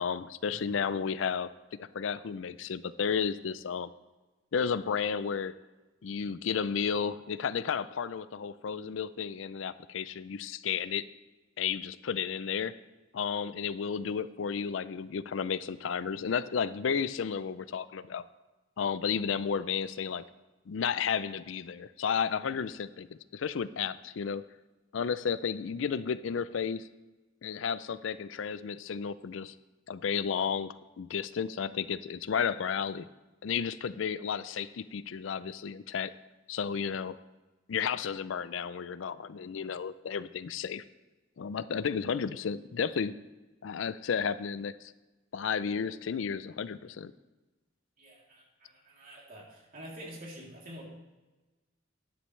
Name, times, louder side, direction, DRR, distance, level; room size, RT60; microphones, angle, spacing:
voice 1, 0.0-1.5 1.8-3.9 4.5-5.5 6.0-11.0 11.6-12.7 13.1-18.2 18.8-20.2 20.7-24.4 24.9-26.9 27.4-29.5 29.9-33.1 33.4-36.1 36.5-37.2 37.7-40.8 41.4-43.2 43.6-44.9 45.3-47.1, left 6 dB, 80° left, 15 dB, 0.4 m, -32 dB
voice 2, 48.0-50.9, equal, 45° right, -3 dB, 3.1 m, -47 dB
11.0 x 10.0 x 3.2 m, 1.2 s
head